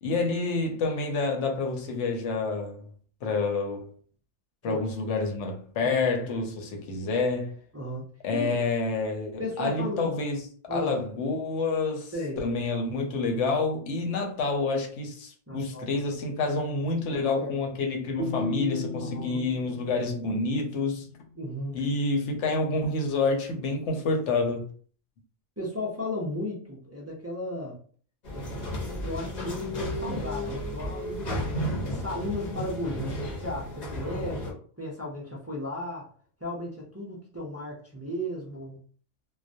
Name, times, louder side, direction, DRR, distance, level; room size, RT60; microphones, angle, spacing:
voice 1, 0.0-2.9 3.2-3.9 4.6-7.6 8.2-10.4 10.7-21.1 21.7-24.7, left 3 dB, 65° left, 0.9 m, -28 dB
voice 2, 5.8-6.2 7.7-8.1 8.3-8.6 9.4-10.1 10.7-11.0 12.1-12.4 15.5-15.9 17.4-17.5 19.0-19.4 21.3-21.8 25.6-27.8 28.3-31.5 31.8-33.1 33.4-36.1 36.4-38.8, left 1 dB, 25° right, 0.3 m, -35 dB
sound 1, 18.2-21.3, left 3 dB, 65° right, 0.7 m, -36 dB
sound 2, 28.2-34.5, equal, 40° left, 0.7 m, -33 dB
2.3 x 2.1 x 2.6 m
omnidirectional pair, 1.4 m